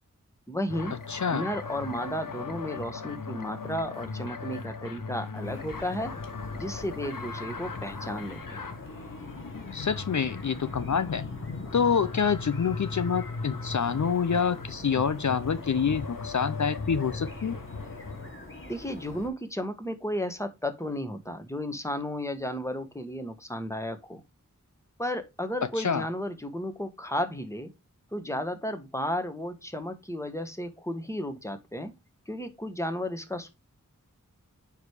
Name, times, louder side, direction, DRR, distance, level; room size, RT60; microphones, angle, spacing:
voice 1, 0.5-1.0 1.3-6.1 6.5-8.8 18.6-24.2 25.0-27.7 28.1-31.9 32.3-33.5, equal, 10° left, 1.5 m, -33 dB
sound 1, 0.7-18.3, left 4 dB, 85° left, 1.0 m, -38 dB
voice 2, 1.1-1.4 9.7-11.2 11.7-17.6 25.8-26.0, left 6 dB, 60° left, 0.6 m, -27 dB
sound 2, 5.4-19.3, left 1 dB, 40° left, 2.6 m, -46 dB
9.4 x 3.4 x 4.8 m
wide cardioid pair, 45°, 32 cm